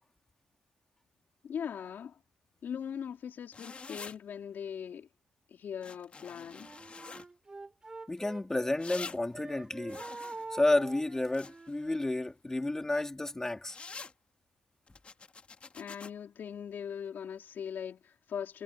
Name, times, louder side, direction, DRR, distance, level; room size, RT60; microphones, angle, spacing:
voice 1, 1.4-2.2 2.6-5.1 5.5-6.7 15.7-18.6, left 8 dB, 60° left, 3.9 m, -40 dB
sound 1, 3.5-4.2 5.8-7.3 8.8-9.2 9.9-11.8 13.6-14.1 14.9-16.1, left 4 dB, 35° left, 2.0 m, -46 dB
Wind instrument woodwind instrument, 6.5-9.1 9.3-12.1, right 3 dB, 20° right, 6.5 m, -46 dB
voice 2, 8.1-10.0 10.5-13.8, left 2 dB, 15° left, 3.3 m, -31 dB
cardioid pair, 140°, 4 cm